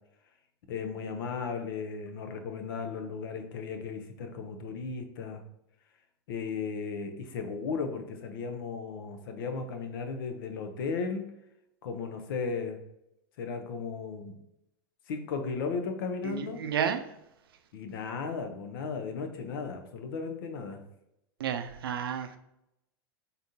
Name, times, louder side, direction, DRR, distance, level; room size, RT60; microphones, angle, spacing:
voice 1, 0.7-5.4 6.3-11.2 11.8-12.8 13.4-14.4 15.1-16.6 17.7-20.8, left 5 dB, 70° left, 6 dB, 0.7 m, -35 dB
voice 2, 16.2-17.0 21.4-22.4, right 8 dB, 80° right, 9 dB, 0.5 m, -31 dB
4.0 x 3.5 x 2.7 m, 0.81 s
hypercardioid pair, 90°, 12 cm